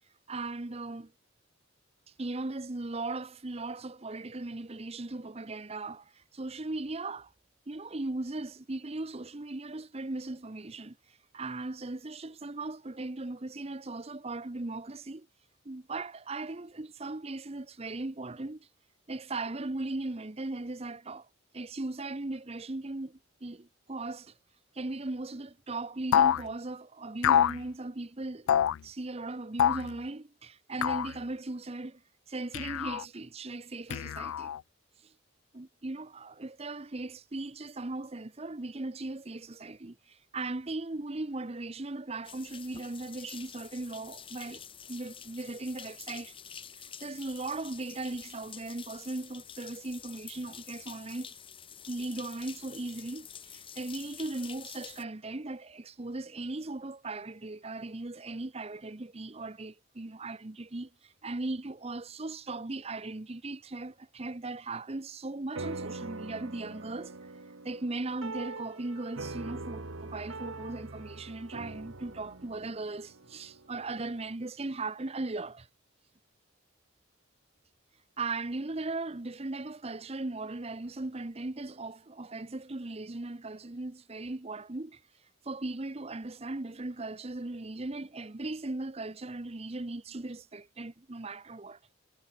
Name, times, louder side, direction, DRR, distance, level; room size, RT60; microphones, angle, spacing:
voice 1, 0.3-1.1 2.1-7.3 7.7-15.3 15.6-18.7 19.1-21.3 21.5-24.3 24.7-28.5 28.8-32.0 32.3-34.5 35.0-35.1 35.5-46.4 46.8-51.4 51.9-67.1 67.6-75.7 78.2-85.0 85.4-91.8, right 2 dB, 30° right, 0.8 m, -38 dB
sound 1, 26.1-26.4 27.2-27.6 28.5-28.8 29.6-29.9 30.8-31.1 32.5-33.0 33.9-34.6, left 9 dB, 80° left, 0.3 m, -26 dB
sound 2, 42.2-55.0, left 8 dB, 25° left, 1.7 m, -48 dB
sound 3, 65.5-74.3, right 3 dB, 75° right, 1.8 m, -43 dB
head